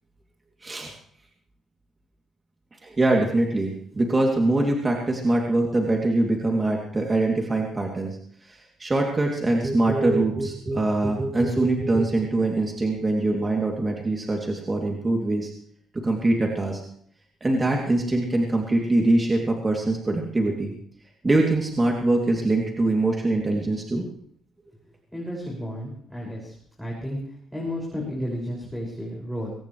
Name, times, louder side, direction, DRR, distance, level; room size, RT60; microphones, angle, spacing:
voice 1, 0.6-0.9 2.8-8.2 8.4-15.5 15.9-16.8 17.4-20.7 21.2-24.1, right 2 dB, 25° right, 0 dB, 3.0 m, -23 dB
voice 2, 25.1-27.2 27.5-29.5, equal, ahead, -5 dB, 6.3 m, -32 dB
23.0 x 18.0 x 3.3 m, 0.63 s
cardioid pair, 90°, 0 cm